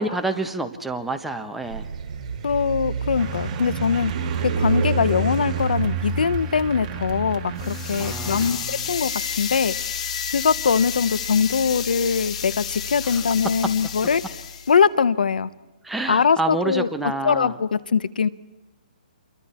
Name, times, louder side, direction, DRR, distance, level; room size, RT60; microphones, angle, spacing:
voice 1, 0.0-1.9 8.0-8.8 15.8-17.6, right 2 dB, 5° right, 5 dB, 1.2 m, -28 dB
sound 1, 1.6-8.8, right 6 dB, 45° right, 5.6 m, -29 dB
voice 2, 2.4-4.1 4.4-9.7 10.3-14.2 14.7-15.5 16.1-18.3, left 6 dB, 75° left, 15 dB, 1.0 m, -22 dB
sound 2, 3.2-8.5, right 2 dB, 25° right, 1.6 m, -34 dB
sound 3, 7.6-14.8, left 7 dB, 50° left, 2.1 m, -31 dB
29.0 x 23.0 x 4.4 m, 1.1 s
hypercardioid pair, 150°, 5 cm